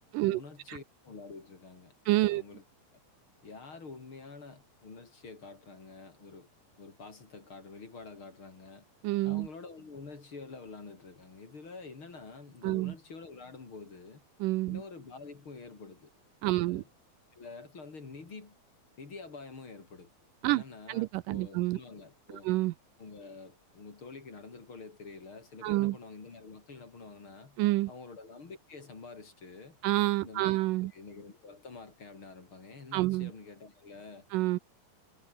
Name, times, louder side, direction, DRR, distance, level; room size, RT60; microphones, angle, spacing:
voice 1, 0.0-1.9 2.2-2.6 3.4-6.5 6.8-8.9 9.2-14.2 14.7-16.1 16.4-16.9 17.3-18.6 19.0-20.1 20.5-22.5 23.0-27.6 27.9-29.8 30.2-30.5 30.9-34.3, left 4 dB, 35° left, 4.1 m, -48 dB
voice 2, 2.1-2.4 9.0-9.5 12.6-12.9 14.4-14.8 16.4-16.8 20.4-20.6 20.9-21.8 22.5-22.7 25.6-26.0 27.6-27.9 29.8-30.9 32.9-33.3 34.3-34.6, right 18 dB, 80° right, 2.1 m, -28 dB
omnidirectional pair, 4.1 m